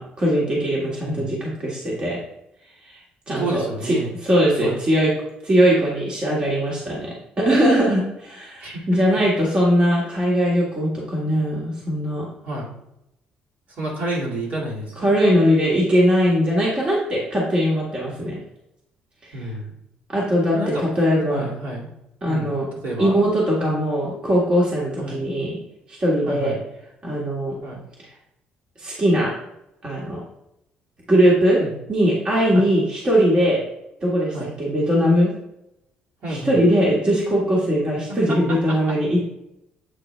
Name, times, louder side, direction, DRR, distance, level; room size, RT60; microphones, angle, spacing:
voice 1, 0.0-2.2 2.8-3.0 3.3-3.9 4.2-5.1 5.4-12.2 15.0-18.4 20.1-21.5 22.2-22.6 23.0-25.6 26.0-26.5 27.0-27.5 28.8-29.3 29.8-30.2 31.1-31.6 31.9-33.6 34.0-35.3 36.3-39.2, equal, 30° right, -5 dB, 1.6 m, -20 dB
voice 2, 3.3-4.1 4.6-4.8 8.6-9.2 12.4-12.7 13.7-15.1 19.3-19.7 20.5-20.8 21.3-21.9 22.3-22.6 22.8-23.2 25.0-25.2 26.3-26.6 27.6-27.8 31.6-31.8 32.5-32.7 34.3-34.5 36.2-36.6 38.3-39.0, right 1 dB, 60° right, -5 dB, 2.3 m, -30 dB
8.0 x 3.8 x 3.2 m, 0.84 s
cardioid pair, 125°, 3 cm